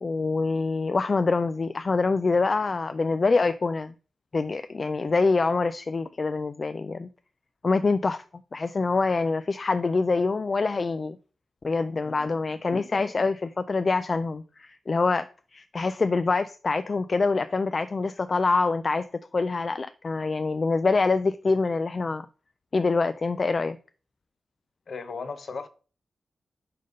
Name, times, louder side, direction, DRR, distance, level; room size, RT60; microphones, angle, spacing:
voice 1, 0.0-3.9 4.3-7.1 7.6-8.2 8.5-11.2 11.6-19.1 19.3-22.3 22.7-23.8, left 3 dB, 35° left, 0.3 m, -25 dB
voice 2, 12.0-12.4 24.9-25.7, left 4 dB, 55° left, 0.8 m, -37 dB
5.7 x 5.1 x 5.3 m
wide cardioid pair, 145°, 0 cm